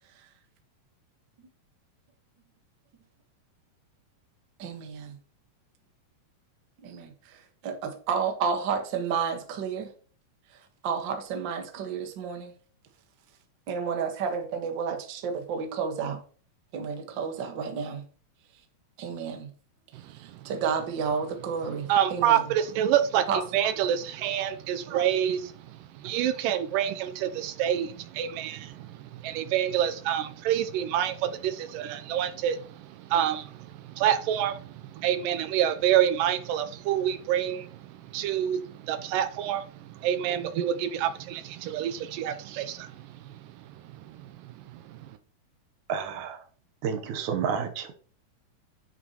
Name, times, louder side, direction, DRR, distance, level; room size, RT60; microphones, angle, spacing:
voice 1, 4.6-5.2 6.8-7.1 7.6-9.9 10.8-12.5 13.7-16.2 16.7-18.0 19.0-19.5 20.4-22.4 23.3-23.4 24.9-25.1, right 6 dB, 50° right, 1.5 m, -31 dB
voice 2, 21.9-45.2, right 10 dB, 85° right, 2.3 m, -28 dB
voice 3, 45.9-46.4 46.8-47.9, right 7 dB, 70° right, 2.2 m, -30 dB
9.9 x 8.0 x 2.9 m
omnidirectional pair, 3.9 m